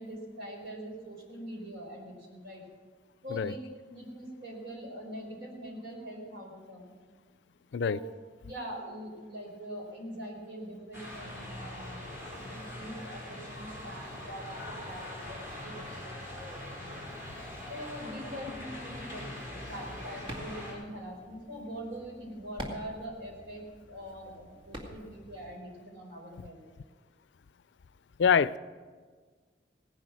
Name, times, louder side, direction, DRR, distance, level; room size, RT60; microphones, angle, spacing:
voice 1, 0.0-2.6 3.2-3.6 3.9-6.9 7.8-8.0 8.4-16.0 16.3-17.0 17.7-19.3 19.7-23.6 23.9-26.6, equal, 75° right, -1 dB, 4.6 m, -43 dB
sound 1, 10.9-20.7, left 1 dB, 15° right, 4.9 m, -42 dB
sound 2, 19.6-25.6, equal, 30° right, 2.2 m, -47 dB
voice 2, 28.2-28.6, left 7 dB, 80° left, 18 dB, 0.4 m, -25 dB
17.5 x 10.5 x 6.2 m, 1.5 s
head